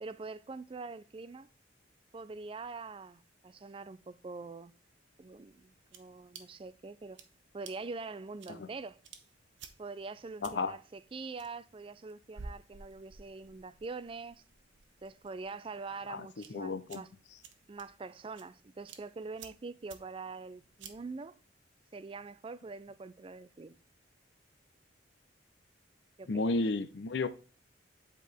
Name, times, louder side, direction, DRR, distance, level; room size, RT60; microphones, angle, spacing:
voice 1, 0.0-1.5 2.1-4.7 5.2-7.2 7.5-9.0 9.8-14.4 15.0-17.1 17.7-21.4 21.9-23.8 26.2-26.6, right 4 dB, 30° right, 0.4 m, -44 dB
sound 1, 5.2-21.2, right 4 dB, 90° right, 1.0 m, -55 dB
voice 2, 10.4-10.8 16.1-16.3 16.5-17.0 26.3-27.3, left 3 dB, 70° left, 0.6 m, -32 dB
8.3 x 4.5 x 3.4 m
head